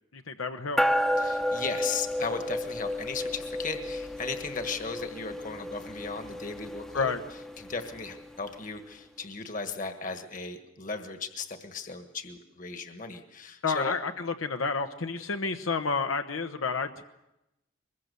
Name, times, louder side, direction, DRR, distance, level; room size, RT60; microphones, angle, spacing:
voice 1, 0.1-0.8 6.9-7.2 13.6-17.0, left 4 dB, 85° left, 6 dB, 1.0 m, -30 dB
sound 1, 0.8-8.5, left 1 dB, 5° left, 0.8 m, -32 dB
voice 2, 1.2-7.1 7.6-13.9, left 4 dB, 40° left, 6 dB, 1.5 m, -36 dB
23.5 x 22.0 x 6.9 m, 0.90 s
head